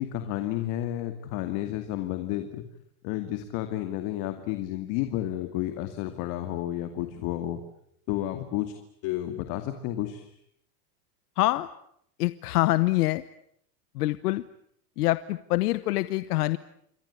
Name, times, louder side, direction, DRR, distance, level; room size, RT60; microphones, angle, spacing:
voice 1, 0.0-2.6 3.0-7.6 8.1-8.8 9.0-10.3, left 13 dB, 45° left, 8 dB, 2.4 m, -31 dB
voice 2, 11.4-11.7 12.2-13.2 13.9-14.4 15.0-16.6, left 18 dB, 75° left, 15 dB, 1.1 m, -25 dB
28.5 x 23.5 x 8.4 m, 0.71 s
supercardioid pair, 160°, 46 cm